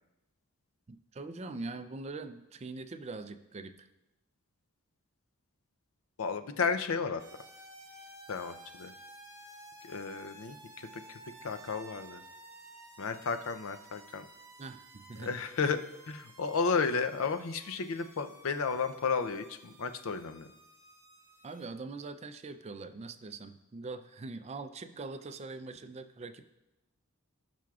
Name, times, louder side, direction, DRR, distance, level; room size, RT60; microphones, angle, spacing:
voice 1, 0.9-3.9 14.6-15.3 21.4-26.5, right 3 dB, 30° right, 10 dB, 0.4 m, -43 dB
voice 2, 6.2-7.2 8.3-8.9 9.8-12.2 13.0-14.2 15.2-15.8 16.1-20.5, left 5 dB, 70° left, 9 dB, 0.5 m, -33 dB
sound 1, 7.2-21.7, right 2 dB, 15° right, 0.9 m, -54 dB
17.5 x 5.9 x 2.4 m, 0.94 s
head